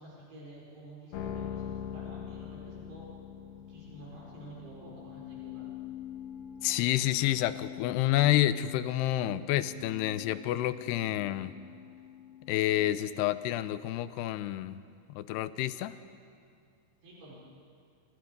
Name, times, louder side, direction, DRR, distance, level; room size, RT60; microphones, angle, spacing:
voice 1, 0.0-3.1 3.7-5.8 17.0-17.3, right 1 dB, 80° right, -5 dB, 7.4 m, -49 dB
sound 1, 1.1-13.4, left 9 dB, 65° left, 2.2 m, -44 dB
voice 2, 6.6-11.5 12.5-14.8 15.1-15.9, left 14 dB, 90° left, 13 dB, 2.8 m, -29 dB
28.5 x 27.5 x 5.3 m, 2.3 s
omnidirectional pair, 4.6 m